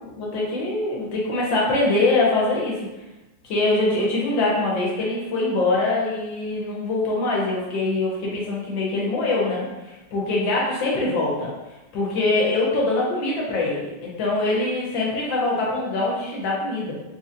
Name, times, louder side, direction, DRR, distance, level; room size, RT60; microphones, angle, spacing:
voice 1, 0.0-2.9 3.4-11.5 11.9-17.0, left 2 dB, 85° left, -4 dB, 1.6 m, -23 dB
3.8 x 2.9 x 2.5 m, 1.0 s
omnidirectional pair, 2.0 m